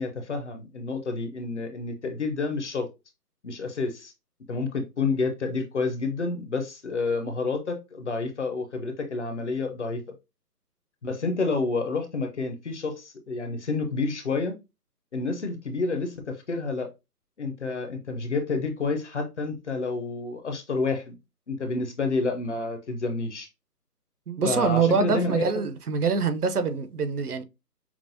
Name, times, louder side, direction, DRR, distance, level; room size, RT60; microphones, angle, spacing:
voice 1, 0.0-2.9 3.4-4.1 4.5-10.0 11.0-14.6 15.1-16.9 17.4-21.2 21.5-23.5 24.4-25.5, left 3 dB, 45° left, 0.8 m, -29 dB
voice 2, 24.3-27.4, right 5 dB, 70° right, 0.8 m, -25 dB
5.9 x 2.0 x 2.6 m
hypercardioid pair, 165°, 48 cm